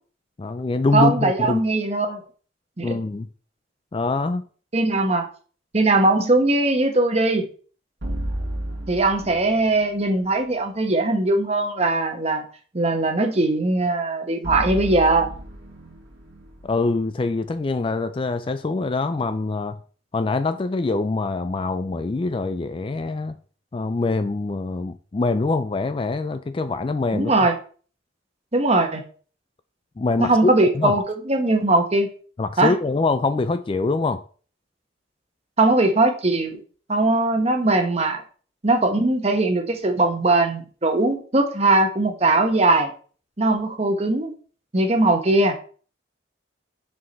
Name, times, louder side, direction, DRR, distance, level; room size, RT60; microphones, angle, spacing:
voice 1, 0.4-1.6 2.8-3.3 3.9-4.4 16.6-19.8 20.1-23.3 23.7-27.3 30.0-30.9 32.4-34.2, left 3 dB, 30° left, 0.3 m, -24 dB
voice 2, 0.9-2.2 2.8-3.0 4.7-5.3 5.7-7.5 8.9-12.4 12.7-15.3 27.1-27.5 28.5-29.0 30.2-32.1 32.6-32.7 35.6-36.6 36.9-38.2 38.6-42.9 43.4-44.3 44.7-45.6, right 2 dB, 35° right, 1.0 m, -20 dB
sound 1, 8.0-10.2 14.4-17.7, right 1 dB, 85° right, 1.8 m, -33 dB
5.8 x 5.3 x 4.0 m
head